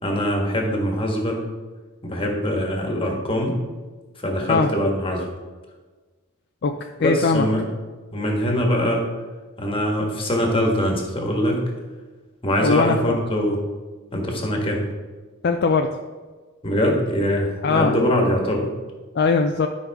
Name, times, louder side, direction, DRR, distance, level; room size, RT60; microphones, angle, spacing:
voice 1, 0.0-1.4 2.0-3.6 4.2-5.3 7.0-7.6 8.1-9.1 9.6-11.6 12.4-13.6 14.1-14.8 16.6-18.7, equal, 25° left, 1 dB, 1.5 m, -22 dB
voice 2, 7.0-7.5 12.6-13.2 15.4-15.9 17.6-17.9 19.2-19.7, left 4 dB, 50° left, 5 dB, 0.4 m, -20 dB
12.0 x 5.3 x 3.5 m, 1.4 s
head